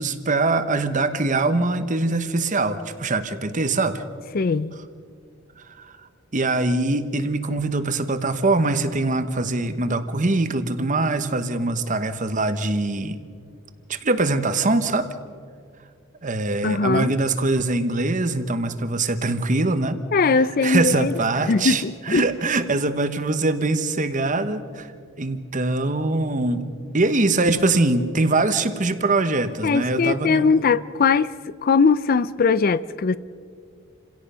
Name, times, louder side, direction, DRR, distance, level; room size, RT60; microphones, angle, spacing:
voice 1, 0.0-4.0 5.7-5.9 6.3-13.2 13.9-15.1 16.2-20.0 20.6-24.9 25.2-26.6 26.9-30.5, right 2 dB, 40° right, 1.1 m, -23 dB
voice 2, 4.3-4.8 16.6-17.1 20.1-21.1 21.4-22.3 29.6-33.2, left 4 dB, 45° left, 0.4 m, -20 dB
28.5 x 17.0 x 5.6 m
head